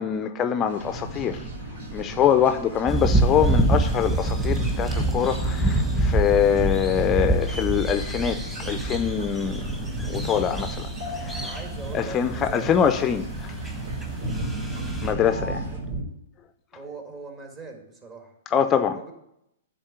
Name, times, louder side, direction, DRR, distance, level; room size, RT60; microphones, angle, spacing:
voice 1, 0.0-1.4 1.9-9.6 10.0-10.9 11.2-11.6 11.9-13.5 15.0-15.7 18.5-19.0, left 8 dB, 25° left, 9 dB, 0.5 m, -24 dB
sound 1, 0.7-15.8, right 1 dB, 75° right, 2.4 m, -47 dB
sound 2, 0.8-16.0, right 2 dB, 60° right, 3.5 m, -34 dB
sound 3, 2.9-15.1, right 2 dB, 10° right, 1.3 m, -27 dB
voice 2, 11.3-12.7 15.6-15.8 16.7-19.1, right 3 dB, 30° right, 3 dB, 2.0 m, -41 dB
9.9 x 3.7 x 6.7 m, 0.79 s
hypercardioid pair, 125°, 0 cm